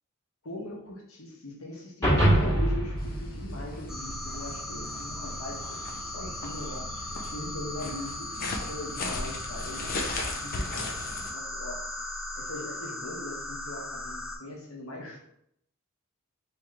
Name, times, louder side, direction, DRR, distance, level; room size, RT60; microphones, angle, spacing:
voice 1, 0.4-6.9 7.3-10.0 10.3-11.0 11.3-11.9 12.4-15.2, left 1 dB, 85° left, -1 dB, 1.0 m, -40 dB
sound 1, 2.0-4.5, right 1 dB, 15° left, 1.4 m, -25 dB
sound 2, 3.0-11.3, left 2 dB, 40° left, 0.5 m, -38 dB
sound 3, 3.9-14.4, left 1 dB, 5° right, 0.8 m, -38 dB
4.7 x 2.9 x 2.4 m, 0.73 s
head